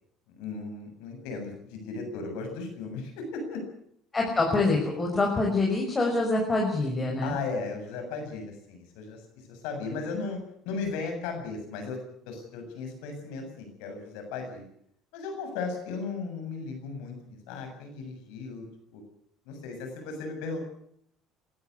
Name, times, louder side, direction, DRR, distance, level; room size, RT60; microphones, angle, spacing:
voice 1, 0.3-3.6 7.2-10.4 10.6-12.0 12.3-14.7 15.1-18.7 18.9-19.0 19.5-20.7, left 4 dB, 80° left, 5 dB, 7.4 m, -36 dB
voice 2, 4.1-7.3, left 2 dB, 25° left, 0 dB, 5.8 m, -25 dB
22.0 x 13.5 x 9.6 m, 0.71 s
supercardioid pair, 80°, 0 cm